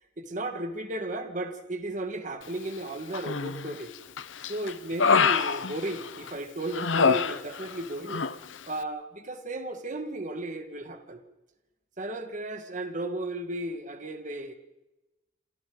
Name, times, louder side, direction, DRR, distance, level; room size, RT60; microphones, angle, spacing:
voice 1, 0.2-3.9 4.4-8.3 8.7-11.2 12.0-14.5, right 1 dB, 40° right, 6 dB, 1.8 m, -35 dB
Human voice, 3.1-3.7 4.2-6.3 6.7-7.8 8.1-8.4, left 5 dB, 85° left, 0.9 m, -25 dB
28.5 x 27.5 x 4.0 m, 1.0 s
head